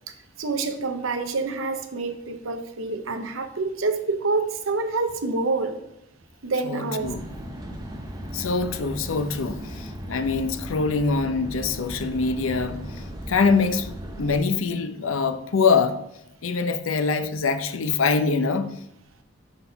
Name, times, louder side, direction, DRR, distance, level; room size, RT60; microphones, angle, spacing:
voice 1, 0.4-5.8 6.4-7.1, right 3 dB, 80° right, 0.8 m, -27 dB
voice 2, 6.6-7.3 8.3-16.0 16.4-18.8, left 4 dB, 80° left, 0.6 m, -24 dB
sound 1, 7.0-14.4, equal, 20° right, 0.7 m, -37 dB
5.5 x 4.1 x 5.6 m
head